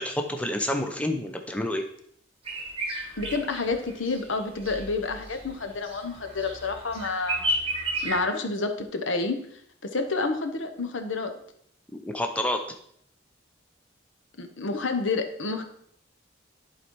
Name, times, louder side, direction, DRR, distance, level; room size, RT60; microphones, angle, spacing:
voice 1, 0.0-1.8 11.9-12.6, left 1 dB, 5° left, 4 dB, 0.6 m, -28 dB
sound 1, 2.5-8.2, right 1 dB, 30° right, 1.6 m, -33 dB
voice 2, 3.2-7.5 8.0-11.4 14.4-15.6, left 3 dB, 85° left, 7 dB, 1.0 m, -29 dB
11.0 x 4.2 x 4.6 m, 0.67 s
head